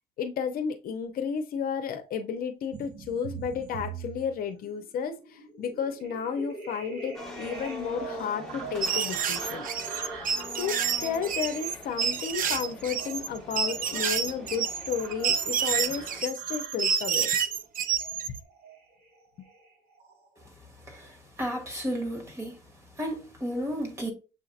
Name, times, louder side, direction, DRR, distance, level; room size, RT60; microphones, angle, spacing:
voice 1, 0.2-10.0 10.5-17.4 19.4-19.5, left 7 dB, 60° left, 0.8 m, -33 dB
sound 1, 2.7-20.5 20.8-21.6, right 4 dB, 80° right, 2.0 m, -44 dB
sound 2, 7.1-16.3, left 1 dB, ahead, 1.4 m, -43 dB
sound 3, 8.8-18.4, right 7 dB, 55° right, 0.7 m, -29 dB
voice 2, 20.9-22.6 23.0-24.1, equal, 15° right, 2.0 m, -33 dB
7.1 x 2.8 x 2.5 m
cardioid pair, 110°, 17 cm